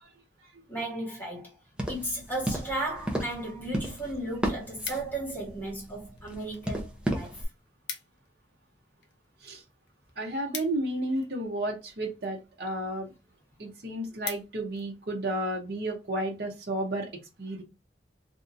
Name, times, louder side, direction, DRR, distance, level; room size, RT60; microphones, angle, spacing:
voice 1, 0.7-1.5 1.9-7.3, right 1 dB, 10° left, 1.4 m, -35 dB
sound 1, 1.8-7.4, right 1 dB, 5° right, 0.7 m, -34 dB
sound 2, 4.9-5.4 6.1-6.7 7.0-7.1 7.3-7.4 7.7-8.3 8.6-11.5 12.2-12.6 13.1-13.2 13.5-13.6 13.9-14.9 15.3-15.6, left 7 dB, 70° left, 0.8 m, -42 dB
voice 2, 10.2-13.1 13.6-17.1 17.4-17.6, right 1 dB, 60° right, 0.8 m, -32 dB
3.5 x 2.7 x 2.6 m
head